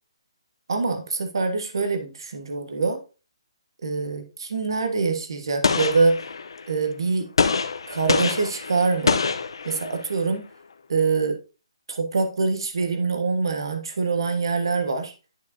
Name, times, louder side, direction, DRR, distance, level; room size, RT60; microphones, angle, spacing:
voice 1, 0.7-3.0 3.8-6.2 6.7-7.3 7.9-9.2 9.6-10.4 10.9-11.4 11.9-15.1, right 4 dB, 60° right, 6 dB, 1.4 m, -24 dB
Gunshot gunfire, 5.6-6.7 7.4-10.2, left 5 dB, 65° left, 0.7 m, -25 dB
11.5 x 4.7 x 2.7 m, 0.32 s
hypercardioid pair, 180°, 3 cm